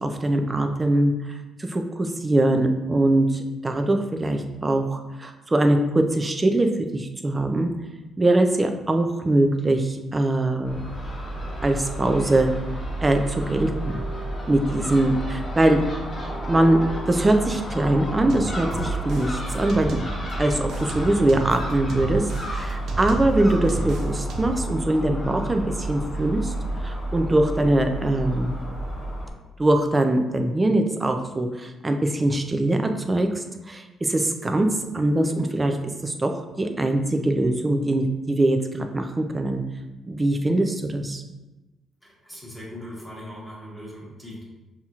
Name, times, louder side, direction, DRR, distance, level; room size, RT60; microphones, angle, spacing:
voice 1, 0.0-7.7 8.2-10.8 11.6-12.5 13.0-14.0 14.5-15.8 16.5-16.8 17.1-20.0 20.4-22.2 22.5-26.5 26.8-28.5 29.6-34.7 34.9-39.6 40.0-41.2, right 1 dB, 20° right, 5 dB, 0.4 m, -22 dB
Crow / Gull seagull, 10.6-29.3, right 1 dB, 30° left, 1.1 m, -31 dB
sound 1, 18.3-20.3 20.7-24.7, right 4 dB, 75° right, 0.5 m, -34 dB
voice 2, 42.0-44.4, equal, 5° left, -5 dB, 1.2 m, -39 dB
5.7 x 2.8 x 2.4 m, 1.1 s
cardioid pair, 105°, 0 cm